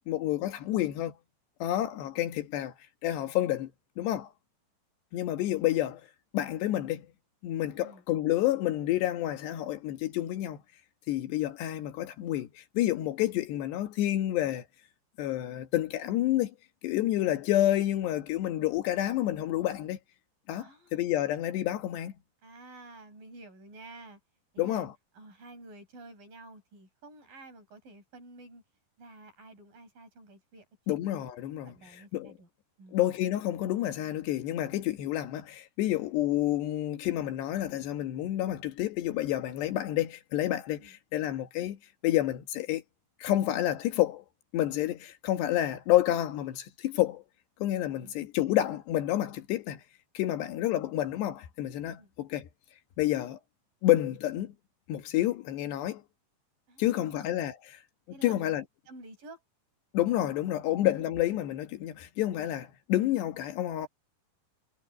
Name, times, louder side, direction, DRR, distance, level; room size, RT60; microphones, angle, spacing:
voice 1, 0.1-1.1 1.6-2.7 3.0-3.7 4.0-4.3 5.1-6.0 6.3-7.1 7.4-10.6 11.1-14.6 15.2-16.5 16.8-20.0 20.5-22.1 24.6-24.9 30.9-32.3 32.9-41.8 42.0-42.8 43.2-44.2 44.5-47.2 47.6-49.8 50.2-52.5 53.0-53.4 53.8-54.5 54.9-56.0 56.8-57.8 58.2-58.6 59.9-63.9, left 13 dB, 85° left, 3.7 m, -29 dB
voice 2, 7.7-8.0 17.3-17.4 20.6-21.0 22.4-24.2 24.5-24.9 25.1-28.6 29.0-30.7 31.6-32.5 32.8-33.0 40.8-41.0 48.0-48.1 52.0-52.1 56.7-57.3 58.1-58.5 58.9-59.4 60.7-60.8, right 2 dB, 55° right, 8.1 m, -50 dB
omnidirectional pair, 4.8 m